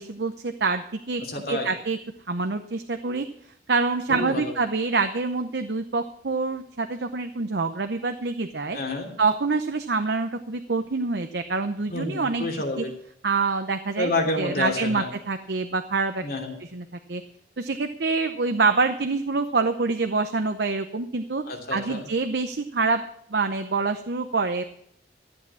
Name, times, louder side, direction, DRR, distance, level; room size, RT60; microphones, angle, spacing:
voice 1, 0.0-1.2 1.5-2.0 2.3-3.3 3.7-8.8 9.2-12.8 13.2-14.1 14.4-16.2 16.6-17.2 17.6-21.4 21.7-23.0 23.3-24.6, right 4 dB, 60° right, 7 dB, 0.8 m, -26 dB
voice 2, 1.2-1.7 4.1-4.5 8.7-9.1 11.9-12.9 14.0-15.1 16.2-16.6 21.5-22.0, left 2 dB, 55° left, 1 dB, 2.9 m, -29 dB
13.5 x 8.4 x 7.3 m, 0.68 s
head